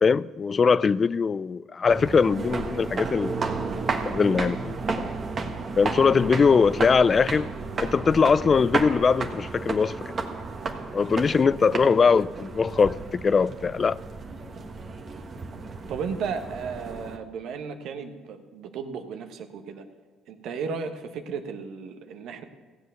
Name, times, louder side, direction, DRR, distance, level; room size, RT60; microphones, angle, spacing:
voice 1, 0.0-3.4 3.9-5.0 5.8-7.5 7.8-10.0 10.9-14.0, left 5 dB, 40° left, 0.3 m, -21 dB
sound 1, 1.9-17.2, right 4 dB, 45° right, 1.5 m, -32 dB
voice 2, 11.5-12.0 15.9-19.8 20.3-22.4, right 5 dB, 70° right, 1.3 m, -34 dB
16.0 x 7.9 x 7.0 m
supercardioid pair, 65°, 0 cm